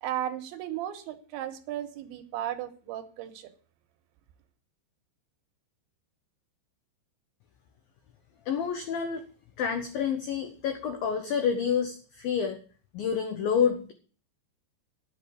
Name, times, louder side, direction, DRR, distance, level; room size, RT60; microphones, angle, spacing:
voice 1, 0.0-3.5, right 11 dB, 80° right, 8 dB, 3.3 m, -35 dB
voice 2, 8.5-9.2 9.6-12.6 12.9-13.9, left 7 dB, 80° left, 7 dB, 2.0 m, -28 dB
10.5 x 7.8 x 8.3 m, 0.41 s
omnidirectional pair, 5.5 m